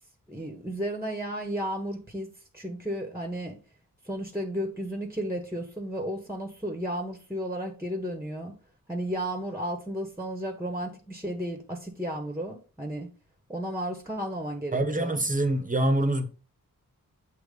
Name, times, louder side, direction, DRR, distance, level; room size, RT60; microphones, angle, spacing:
voice 1, 0.3-3.6 4.0-8.5 8.9-13.1 13.5-15.2, right 1 dB, 5° right, 1.3 m, -33 dB
voice 2, 14.7-16.3, right 1 dB, 25° right, 1.1 m, -25 dB
8.0 x 3.0 x 5.2 m
wide cardioid pair, 75°, 34 cm